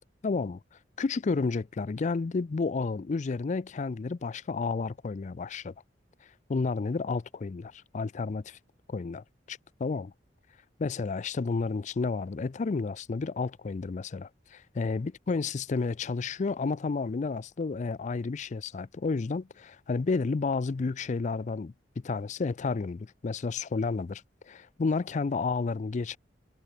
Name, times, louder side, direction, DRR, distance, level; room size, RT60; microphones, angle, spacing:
voice 1, 0.2-0.6 1.0-5.7 6.5-8.6 8.9-10.1 10.8-14.3 14.7-21.7 22.0-24.2 24.5-26.2, left 4 dB, 40° left, 0.4 m, -31 dB
head